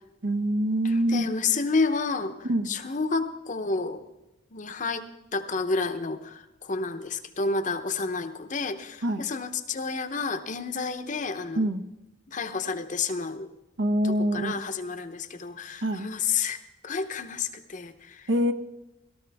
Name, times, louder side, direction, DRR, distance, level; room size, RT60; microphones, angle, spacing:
voice 1, 0.2-1.3 2.4-2.7 9.0-9.2 11.6-11.8 13.8-14.6 15.8-16.1 18.3-18.5, right 1 dB, 65° right, 8 dB, 0.9 m, -25 dB
voice 2, 0.8-2.3 2.7-4.0 4.5-5.0 5.3-11.7 12.3-13.5 14.0-16.6 16.8-18.3, left 4 dB, 40° left, 9 dB, 0.8 m, -30 dB
17.5 x 13.0 x 3.5 m, 0.98 s
head